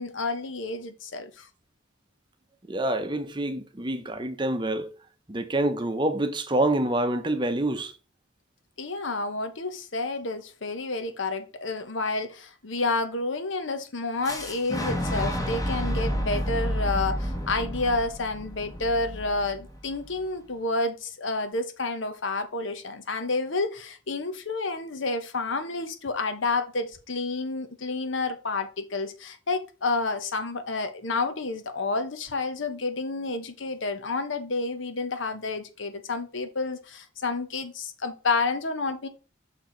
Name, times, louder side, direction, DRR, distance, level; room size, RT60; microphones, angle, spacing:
voice 1, 0.0-1.5 8.8-39.1, left 3 dB, 75° left, 0.9 m, -30 dB
voice 2, 2.7-4.9 5.3-7.9, right 1 dB, 25° right, 0.7 m, -27 dB
Boom, 14.2-20.1, equal, 20° left, 1.2 m, -30 dB
6.2 x 4.6 x 3.8 m
head